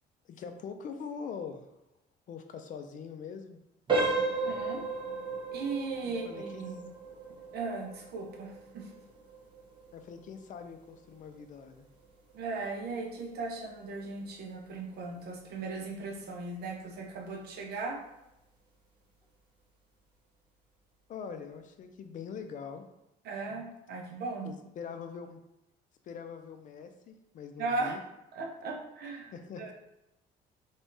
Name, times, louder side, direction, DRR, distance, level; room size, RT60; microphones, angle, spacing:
voice 1, 0.2-1.6 2.3-3.6 6.0-6.7 9.9-11.9 21.1-22.8 23.5-23.6 24.4-25.4 26.0-28.0 29.3-29.7, left 6 dB, 50° left, 7 dB, 0.5 m, -43 dB
sound 1, 3.9-14.6 14.9-15.1 15.7-15.8 16.3-16.5, right 3 dB, 30° right, 1.0 m, -36 dB
voice 2, 4.4-4.8 5.5-6.8 7.5-8.9 12.3-18.0 23.2-24.5 27.6-28.0 28.3-29.3 29.6-29.7, right 3 dB, 70° right, 1 dB, 0.9 m, -37 dB
3.5 x 3.3 x 2.7 m, 0.89 s
cardioid pair, 110°, 17 cm